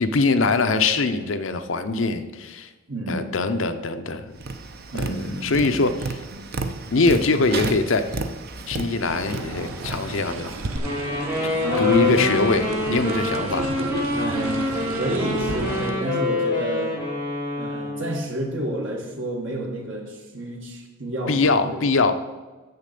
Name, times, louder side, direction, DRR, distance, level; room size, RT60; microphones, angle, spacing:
voice 1, 0.0-2.7 3.1-4.3 4.9-6.2 6.9-8.1 8.7-10.5 11.8-13.7 21.3-22.1, left 3 dB, 65° left, 9 dB, 0.6 m, -22 dB
voice 2, 2.9-3.3 4.9-6.0 11.6-12.2 13.0-13.4 14.1-17.0 17.6-21.8, right 1 dB, 60° right, 1 dB, 1.7 m, -30 dB
Tap, 4.4-10.8, right 3 dB, 45° right, 0.6 m, -32 dB
sound 1, 9.0-15.9, right 2 dB, 85° right, 1.1 m, -33 dB
Wind instrument woodwind instrument, 10.8-18.3, left 2 dB, 10° right, 2.6 m, -26 dB
7.7 x 6.8 x 6.7 m, 1.2 s
head